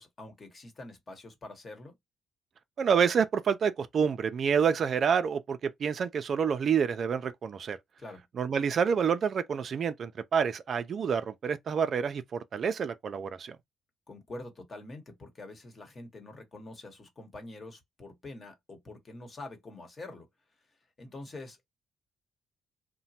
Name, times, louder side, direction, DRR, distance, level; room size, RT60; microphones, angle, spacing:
voice 1, 0.0-1.9 8.0-8.2 14.1-20.3 21.0-21.6, left 2 dB, 35° left, 1.1 m, -45 dB
voice 2, 2.8-7.8 8.4-13.6, right 7 dB, 55° right, 0.4 m, -28 dB
2.9 x 2.1 x 2.7 m
cardioid pair, 90°, 0 cm